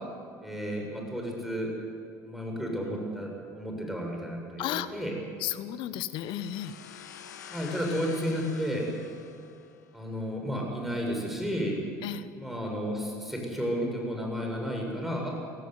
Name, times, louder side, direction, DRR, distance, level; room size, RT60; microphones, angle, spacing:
voice 1, 0.4-1.7 2.2-3.3 3.5-5.1 7.5-8.8 9.9-11.8 12.4-15.3, equal, ahead, 0 dB, 7.5 m, -32 dB
voice 2, 5.4-6.8 12.0-12.3, left 12 dB, 60° left, 13 dB, 1.1 m, -33 dB
sound 1, 6.3-10.0, left 9 dB, 85° left, 1.3 m, -47 dB
17.5 x 15.5 x 9.9 m, 2.3 s
hypercardioid pair, 70°, 9 cm